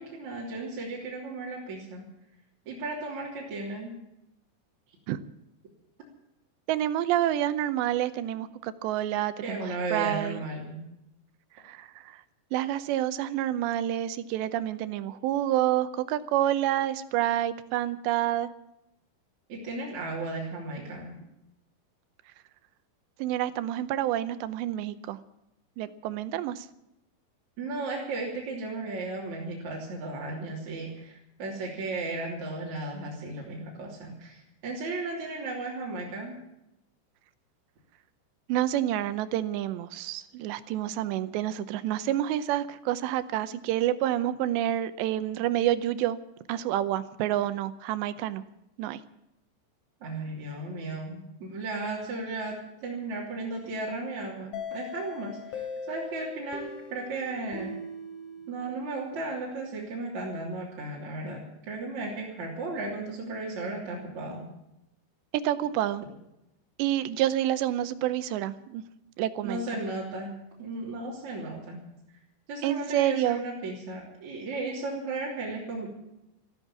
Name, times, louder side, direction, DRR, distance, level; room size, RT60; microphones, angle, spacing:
voice 1, 0.0-2.0 2.7-3.9 9.4-10.8 19.5-21.2 27.6-36.4 50.0-57.8 58.5-64.5 69.4-70.3 70.6-71.8 72.5-75.9, right 2 dB, 45° right, -3 dB, 4.0 m, -35 dB
voice 2, 6.7-10.4 11.6-12.2 12.5-18.5 23.2-25.2 25.8-26.7 38.5-46.2 46.5-48.4 48.8-49.0 65.4-66.0 66.8-68.8 69.2-69.6 72.6-73.4, right 12 dB, 80° right, 13 dB, 2.9 m, -28 dB
sound 1, 54.5-59.2, left 3 dB, 45° left, 3.3 m, -40 dB
14.5 x 13.5 x 7.3 m, 0.87 s
omnidirectional pair, 5.2 m